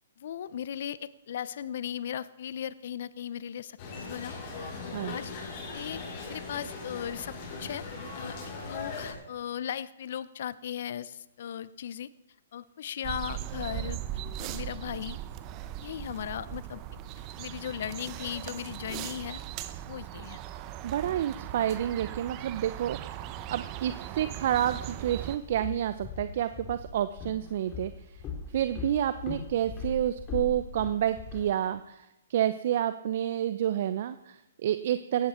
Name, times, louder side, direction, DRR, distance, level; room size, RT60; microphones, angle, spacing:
voice 1, 0.2-5.4 5.7-6.0 6.3-7.8 8.1-8.4 8.7-12.1 12.5-14.0 14.4-15.2 15.8-16.8 17.4-19.4 19.9-20.4, left 9 dB, 55° left, 17 dB, 0.8 m, -37 dB
sound 1, 3.8-9.1, left 3 dB, 40° left, 7.5 m, -39 dB
sound 2, 13.0-25.4, right 12 dB, 30° right, 1.1 m, -39 dB
voice 2, 20.8-23.0 23.5-27.9 28.5-32.0 32.3-35.3, right 11 dB, 50° right, 12 dB, 0.7 m, -29 dB
Walk footsteps, 25.4-31.5, left 5 dB, 25° left, 3.7 m, -40 dB
17.5 x 15.0 x 4.5 m, 0.94 s
hypercardioid pair, 130°, 0 cm